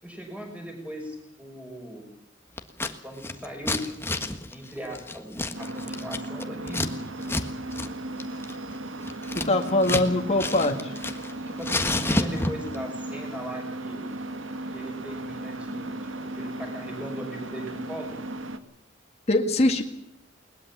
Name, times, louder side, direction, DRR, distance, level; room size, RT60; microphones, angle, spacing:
voice 1, 0.0-2.0 3.0-4.2 4.5-6.9 11.4-14.0 14.7-18.2, equal, 5° right, 2 dB, 6.2 m, -39 dB
Scissors, 2.6-2.9 3.2-6.9 7.2-7.5 7.7-7.9 8.2-10.1 10.4-11.3 11.6-12.8, left 2 dB, 15° left, 1.5 m, -29 dB
sound 1, 5.5-18.6, right 1 dB, 85° right, 1.9 m, -36 dB
voice 2, 9.4-10.9 19.3-19.8, left 2 dB, 35° left, 3 dB, 1.9 m, -22 dB
21.0 x 20.5 x 7.4 m, 0.81 s
head